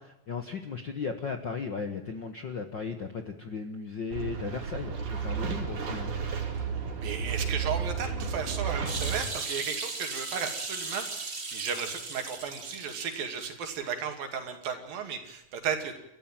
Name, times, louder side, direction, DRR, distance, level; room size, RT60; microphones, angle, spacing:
voice 1, 0.0-6.1, left 5 dB, 55° left, 7 dB, 1.2 m, -36 dB
sound 1, 4.1-9.2, right 6 dB, 60° right, 4.3 m, -32 dB
voice 2, 7.0-16.0, right 7 dB, 80° right, 6 dB, 4.3 m, -34 dB
sound 2, 8.8-13.4 13.7-13.8, right 3 dB, 25° right, 1.4 m, -37 dB
29.0 x 13.5 x 9.0 m, 0.88 s
omnidirectional pair, 4.0 m